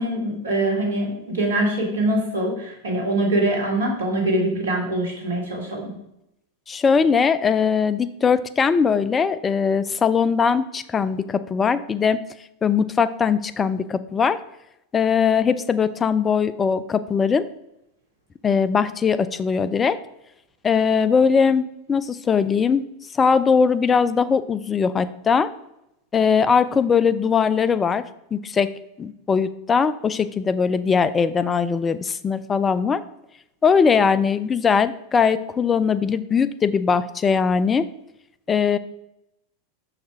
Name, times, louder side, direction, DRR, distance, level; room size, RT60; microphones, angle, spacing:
voice 1, 0.0-5.9, right 1 dB, 75° right, -1 dB, 2.0 m, -23 dB
voice 2, 6.7-12.2 12.6-14.4 14.9-17.5 18.4-20.0 20.6-22.9 23.1-25.5 26.1-33.0 33.6-37.9 38.5-38.8, left 6 dB, 20° left, 14 dB, 0.5 m, -20 dB
6.1 x 4.9 x 4.7 m, 0.83 s
hypercardioid pair, 90°, 0 cm